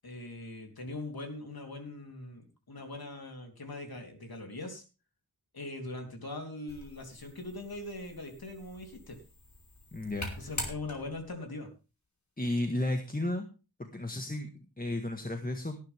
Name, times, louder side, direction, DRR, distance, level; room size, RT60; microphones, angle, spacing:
voice 1, 0.0-4.8 5.5-9.2 10.4-11.7, left 2 dB, 70° left, 4 dB, 3.6 m, -41 dB
sound 1, 6.7-11.4, left 1 dB, 50° left, 5.2 m, -44 dB
voice 2, 9.9-10.5 12.4-13.4 13.8-15.8, left 1 dB, 25° left, 5 dB, 1.7 m, -33 dB
18.5 x 10.5 x 3.6 m, 0.32 s
wide cardioid pair, 70°, 37 cm